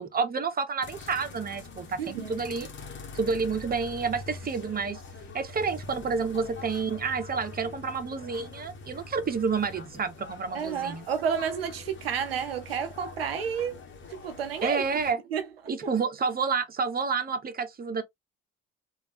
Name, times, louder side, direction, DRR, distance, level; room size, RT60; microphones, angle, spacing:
voice 1, 0.0-2.7 3.1-5.0 5.3-11.1 14.6-15.2 15.7-18.0, right 5 dB, 30° right, 1.0 m, -29 dB
sound 1, 0.8-15.1, left 3 dB, 40° left, 1.4 m, -44 dB
voice 2, 2.0-2.4 10.5-13.8 14.1-14.8 15.3-15.5, right 7 dB, 90° right, 0.5 m, -31 dB
3.5 x 2.7 x 2.9 m
hypercardioid pair, 50°, 29 cm